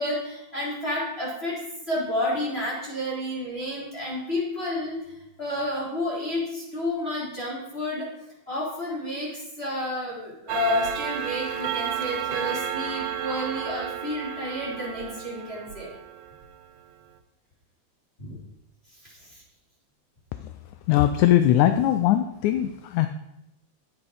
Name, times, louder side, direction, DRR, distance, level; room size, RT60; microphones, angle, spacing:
voice 1, 0.0-8.1 8.5-15.9 18.2-18.4 19.0-19.4, left 1 dB, 20° left, -7 dB, 3.8 m, -30 dB
Clock, 10.5-16.5, right 9 dB, 85° right, 2.4 m, -32 dB
voice 2, 20.9-23.1, left 12 dB, 80° left, 9 dB, 1.9 m, -20 dB
10.5 x 8.6 x 4.9 m, 0.88 s
omnidirectional pair, 3.5 m